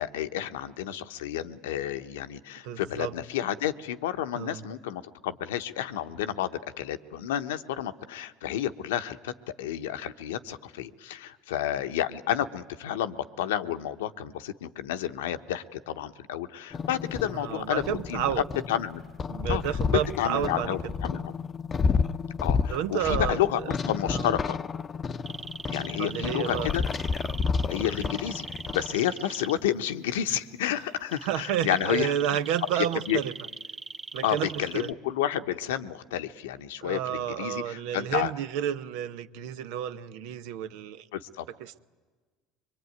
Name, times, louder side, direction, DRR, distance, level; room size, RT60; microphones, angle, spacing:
voice 1, 0.0-19.0 19.5-19.7 20.2-21.3 22.4-24.6 25.7-26.8 27.7-28.5 28.7-32.4 32.8-33.2 34.2-38.3 41.1-41.4, left 11 dB, 90° left, 1.0 m, -31 dB
voice 2, 2.6-3.1 4.3-4.6 17.3-18.4 19.3-20.7 22.7-23.4 24.1-24.2 26.0-26.7 31.2-33.3 34.1-34.9 36.8-41.0 41.6-41.8, right 10 dB, 75° right, 0.9 m, -30 dB
sound 1, 16.7-29.0, left 5 dB, 35° left, 0.7 m, -31 dB
sound 2, 25.3-29.5 31.1-34.9, right 4 dB, 25° right, 1.1 m, -40 dB
23.5 x 23.0 x 9.4 m
supercardioid pair, 90°, 0 cm